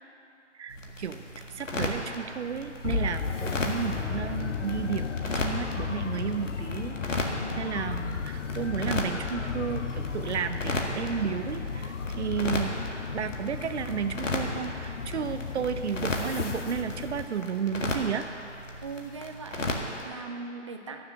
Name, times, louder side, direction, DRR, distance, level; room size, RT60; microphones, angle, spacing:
voice 1, 0.6-1.2 1.5-7.3 7.6-8.2 8.5-12.7 13.1-18.3, right 7 dB, 65° right, 10 dB, 0.8 m, -32 dB
sound 1, 0.7-20.1, left 2 dB, 85° left, 1.7 m, -36 dB
sound 2, 2.8-17.3, left 5 dB, 70° left, 0.8 m, -34 dB
voice 2, 7.4-7.8 18.8-21.1, right 4 dB, 25° right, 5 dB, 0.4 m, -40 dB
12.5 x 6.9 x 6.4 m, 2.7 s
figure-of-eight pair, 145°, 37 cm